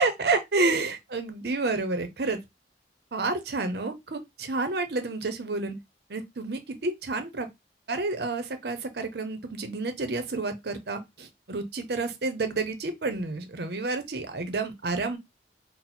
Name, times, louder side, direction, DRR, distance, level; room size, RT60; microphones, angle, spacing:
voice 1, 0.0-2.4 3.1-5.8 6.1-7.5 7.9-15.2, right 3 dB, 60° right, 0.7 m, -29 dB
4.2 x 2.0 x 4.2 m
head